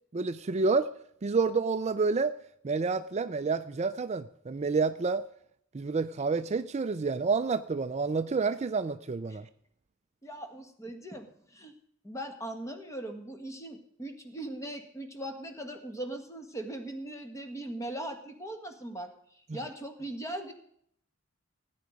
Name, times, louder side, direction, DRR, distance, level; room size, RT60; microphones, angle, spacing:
voice 1, 0.1-0.9 1.2-2.3 2.6-5.3 5.7-9.5, right 4 dB, 35° right, 11 dB, 0.4 m, -29 dB
voice 2, 10.2-11.7 12.0-20.5, right 1 dB, 15° left, 6 dB, 1.7 m, -40 dB
17.5 x 9.5 x 5.2 m, 0.68 s
head